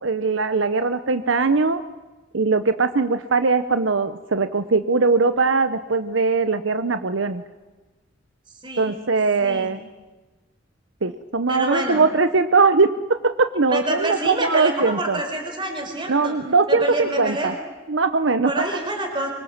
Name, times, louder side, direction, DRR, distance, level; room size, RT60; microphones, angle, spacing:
voice 1, 0.0-1.8 2.3-7.4 8.8-9.8 11.0-12.9 13.2-15.2 16.1-17.5 17.9-18.6, right 4 dB, 75° right, 10 dB, 0.9 m, -20 dB
voice 2, 8.6-9.0 9.4-9.8 11.5-12.0 13.7-16.3 16.7-17.5 18.4-19.3, right 1 dB, 25° right, 4 dB, 4.4 m, -27 dB
25.0 x 24.5 x 7.4 m, 1.2 s
head